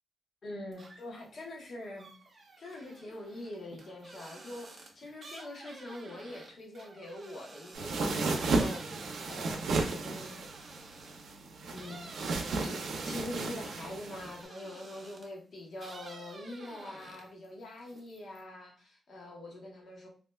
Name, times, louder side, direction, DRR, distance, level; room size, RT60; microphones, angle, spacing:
voice 1, 0.4-2.1 2.6-8.8 9.3-10.4 11.7-12.1 12.6-12.8 13.0-20.1, left 1 dB, 55° left, -1 dB, 1.0 m, -44 dB
sound 1, 0.7-1.3 1.6-11.3 11.7-15.4 15.8-17.5 17.8-18.4, right 3 dB, 45° right, 0.6 m, -51 dB
sound 2, 7.7-14.4, right 3 dB, 90° right, 0.5 m, -33 dB
3.2 x 2.8 x 2.2 m, 0.40 s
wide cardioid pair, 140°, 0 cm